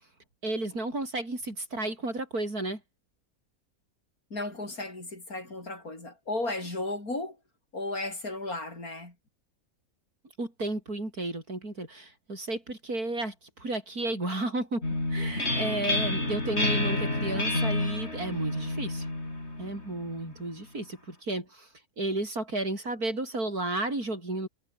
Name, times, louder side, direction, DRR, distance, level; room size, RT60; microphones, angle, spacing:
voice 1, 0.4-2.8 10.4-13.3 13.6-14.8 15.1-19.1 19.6-21.7 22.0-24.5, right 2 dB, 85° right, 7.5 m, -33 dB
voice 2, 4.3-7.4 7.7-9.1, left 2 dB, 75° left, 6.9 m, -34 dB
sound 1, 14.8-20.4, left 2 dB, 45° left, 5.8 m, -29 dB
omnidirectional pair, 1.5 m